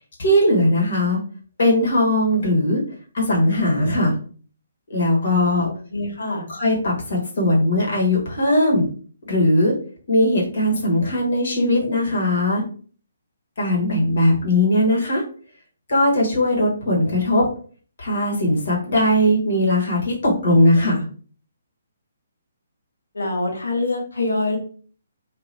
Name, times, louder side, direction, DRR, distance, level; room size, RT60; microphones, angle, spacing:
voice 1, 0.2-1.2 1.6-2.8 3.1-4.1 4.9-5.7 6.5-8.9 9.3-9.7 10.1-12.6 13.6-15.2 15.9-17.4 18.0-21.1, left 1 dB, 55° left, -2 dB, 1.3 m, -19 dB
voice 2, 5.2-6.4 23.1-24.6, left 2 dB, 70° left, 1 dB, 1.0 m, -25 dB
2.9 x 2.5 x 2.7 m, 0.43 s
figure-of-eight pair, 135°, 0 cm